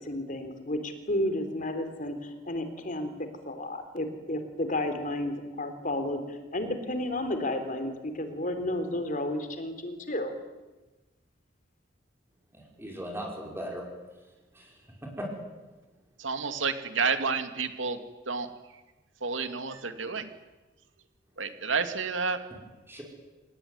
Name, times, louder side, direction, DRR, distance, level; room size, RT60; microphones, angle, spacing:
voice 1, 0.0-3.1 3.5-10.3, left 1 dB, 45° left, 8 dB, 3.5 m, -32 dB
voice 2, 12.5-13.8 14.5-14.7 15.0-15.3 22.9-23.0, equal, 10° right, -1 dB, 5.6 m, -38 dB
voice 3, 16.2-18.0 18.3-18.5 19.2-20.3 21.4-22.4, right 5 dB, 85° right, 8 dB, 2.5 m, -30 dB
27.5 x 19.0 x 9.7 m, 1.2 s
head